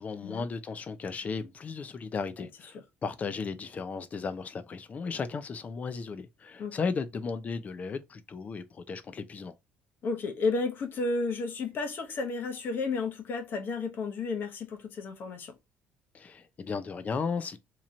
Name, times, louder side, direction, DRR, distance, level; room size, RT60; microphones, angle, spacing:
voice 1, 0.0-9.5 16.1-17.6, left 5 dB, 35° left, 0.6 m, -35 dB
voice 2, 10.0-15.5, left 3 dB, 55° left, 1.0 m, -32 dB
3.0 x 2.9 x 3.7 m
cardioid pair, 105°, 4 cm